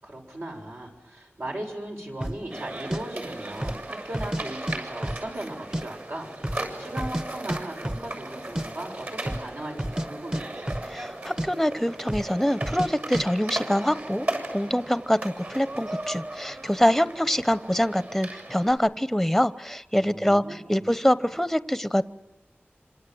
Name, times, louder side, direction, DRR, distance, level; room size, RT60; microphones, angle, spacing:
voice 1, 0.0-6.3 6.5-10.7 20.0-20.6, right 1 dB, 70° right, 0 dB, 6.7 m, -37 dB
sound 1, 2.2-2.4 2.9-3.0 3.5-3.8 4.1-4.8 5.0-5.8 6.1-6.2 6.4-7.2 7.5-7.6 7.8-8.1 8.4-8.7 9.2-9.5 9.8-10.1 10.3-11.1 11.4-11.5 12.1-12.3 12.6-12.9 13.1-13.3, right 1 dB, 20° right, 1.1 m, -30 dB
sound 2, 2.5-18.7, right 1 dB, 55° right, 7.3 m, -37 dB
voice 2, 10.9-22.0, equal, 5° left, 14 dB, 0.9 m, -25 dB
27.5 x 26.5 x 7.9 m, 1.1 s
wide cardioid pair, 55°, 4 cm